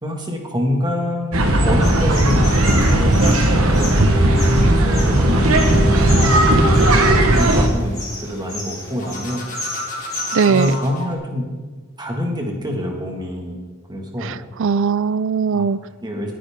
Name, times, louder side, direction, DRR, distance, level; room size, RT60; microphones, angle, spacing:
voice 1, 0.0-3.2 3.5-4.3 4.8-9.4 10.4-11.4 12.0-13.6 13.9-14.4 15.5-16.3, equal, 20° right, 1 dB, 1.9 m, -26 dB
sound 1, 1.3-7.7, right 1 dB, 85° right, 1.3 m, -15 dB
sound 2, 1.8-10.7, left 2 dB, 20° left, 3.2 m, -33 dB
sound 3, 3.7-7.5 8.9-11.1, left 1 dB, 40° left, 2.1 m, -30 dB
voice 2, 10.3-10.8 14.2-15.8, right 6 dB, 65° right, 18 dB, 0.4 m, -19 dB
19.0 x 9.4 x 3.7 m, 1.4 s
head